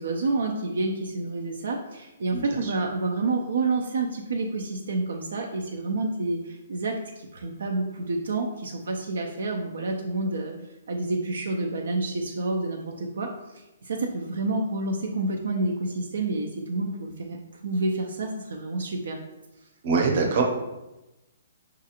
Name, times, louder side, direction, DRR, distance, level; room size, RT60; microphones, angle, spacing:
voice 1, 0.0-10.5 10.9-17.4 17.6-19.2, right 2 dB, 75° right, 1 dB, 0.5 m, -29 dB
voice 2, 2.3-2.7 19.8-20.4, right 4 dB, 45° right, 1 dB, 0.8 m, -24 dB
5.7 x 2.4 x 2.9 m, 0.99 s
hypercardioid pair, 165°, 0 cm